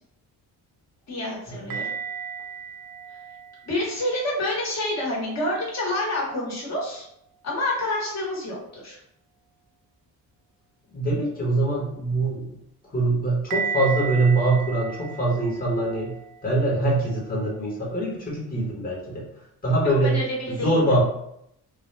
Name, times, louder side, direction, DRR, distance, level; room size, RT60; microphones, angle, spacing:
voice 1, 1.1-1.9 3.7-7.0 7.4-9.0 19.8-21.0, left 1 dB, 45° left, -3 dB, 1.4 m, -28 dB
sound 1, 1.7-5.6 6.0-6.6 13.5-18.2, right 6 dB, 60° right, 0.6 m, -36 dB
voice 2, 10.9-12.6 12.9-16.1 16.4-19.2 19.6-20.2 20.5-21.0, right 2 dB, 20° left, -5 dB, 1.2 m, -23 dB
3.9 x 2.3 x 3.3 m, 0.75 s
cardioid pair, 135°, 39 cm